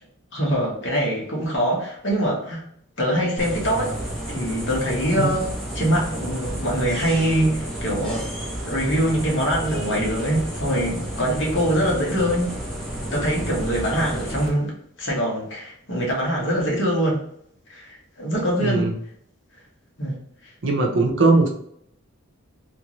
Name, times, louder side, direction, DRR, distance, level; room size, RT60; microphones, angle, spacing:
voice 1, 0.3-2.6 3.0-3.9 4.3-8.3 8.6-12.5 13.1-17.2 17.7-18.9 20.0-20.1, equal, 55° left, -3 dB, 1.2 m, -23 dB
sound 1, 3.4-14.5, right 1 dB, ahead, 0.7 m, -31 dB
voice 2, 18.6-18.9 20.6-21.5, right 3 dB, 55° right, 2 dB, 0.7 m, -19 dB
3.5 x 2.6 x 3.0 m, 0.69 s
head